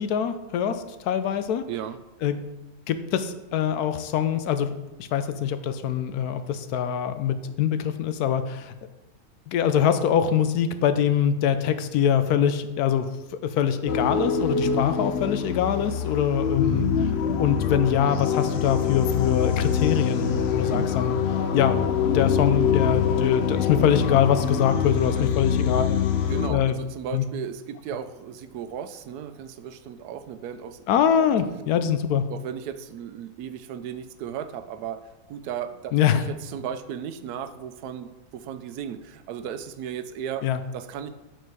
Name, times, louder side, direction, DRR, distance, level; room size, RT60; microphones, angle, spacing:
voice 1, 0.0-1.6 2.2-2.4 2.9-4.7 5.0-8.7 9.5-13.1 13.4-17.1 17.4-21.2 21.5-21.8 22.1-26.0 26.5-26.8 27.1-27.2 30.9-32.2 35.9-36.3 40.4-40.6, left 8 dB, 85° left, 10 dB, 1.1 m, -24 dB
sound 1, 13.9-26.5, left 7 dB, 60° left, 0.7 m, -24 dB
voice 2, 20.7-21.0 25.1-25.2 26.3-30.8 31.2-31.3 32.3-40.4 40.7-41.1, right 8 dB, 90° right, 11 dB, 1.1 m, -35 dB
8.0 x 4.4 x 4.6 m, 1.0 s
omnidirectional pair, 1.6 m